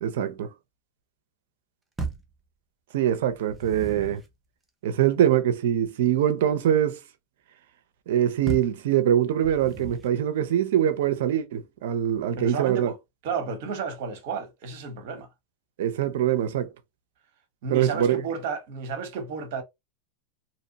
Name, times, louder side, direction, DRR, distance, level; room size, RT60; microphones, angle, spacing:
voice 1, 0.0-0.5 2.9-4.2 4.8-7.0 8.1-12.9 15.8-16.7 17.7-18.2, right 10 dB, 75° right, 0.5 m, -23 dB
sound 1, 2.0-2.4 3.3-4.3 8.5-8.8 9.4-10.2, right 2 dB, 10° right, 0.5 m, -35 dB
voice 2, 12.4-13.0 13.2-15.3 17.6-19.6, right 5 dB, 60° right, 0.9 m, -32 dB
2.8 x 2.1 x 2.7 m
supercardioid pair, 145°, 0 cm